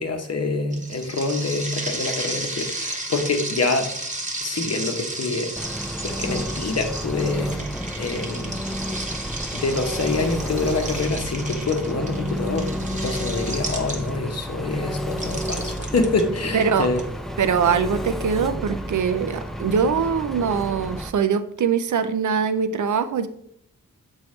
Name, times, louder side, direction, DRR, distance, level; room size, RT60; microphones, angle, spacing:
voice 1, 0.0-3.9 4.4-5.5 5.8-7.5 8.0-8.6 9.5-17.1, left 3 dB, 50° left, 5 dB, 0.9 m, -26 dB
sound 1, 0.7-14.3 15.1-17.0, right 2 dB, 25° right, 0.9 m, -33 dB
Engine, 5.6-21.1, equal, ahead, 0.4 m, -31 dB
voice 2, 16.5-16.9 17.4-23.3, right 6 dB, 65° right, 10 dB, 0.5 m, -22 dB
7.3 x 4.6 x 3.2 m, 0.70 s
wide cardioid pair, 115°, 32 cm